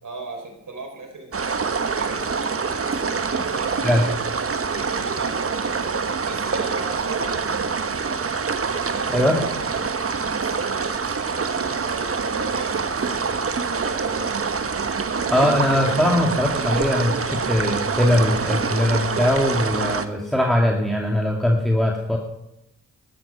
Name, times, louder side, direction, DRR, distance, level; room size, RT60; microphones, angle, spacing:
voice 1, 0.0-2.6 3.3-7.8 8.8-14.3, right 3 dB, 60° right, 3 dB, 5.1 m, -38 dB
sound 1, 1.3-20.0, right 5 dB, 40° right, 1.3 m, -25 dB
voice 2, 15.3-22.2, left 1 dB, ahead, 0 dB, 2.5 m, -21 dB
12.5 x 12.5 x 5.8 m, 0.83 s
supercardioid pair, 45°, 36 cm